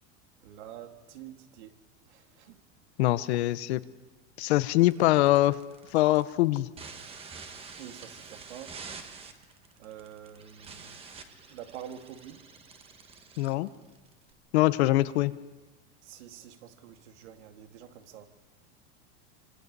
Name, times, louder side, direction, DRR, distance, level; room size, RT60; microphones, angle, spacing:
voice 1, 0.4-1.8 2.1-2.6 7.8-8.7 9.8-11.0 11.5-12.5 16.0-18.3, right 10 dB, 80° right, 6 dB, 2.2 m, -46 dB
voice 2, 3.0-3.8 4.4-5.6 5.9-6.7 13.4-13.7 14.5-15.3, left 16 dB, 70° left, 15 dB, 1.0 m, -23 dB
sound 1, 4.8-14.3, right 5 dB, 15° right, 1.3 m, -48 dB
26.0 x 25.5 x 5.4 m, 1.1 s
supercardioid pair, 165°, 34 cm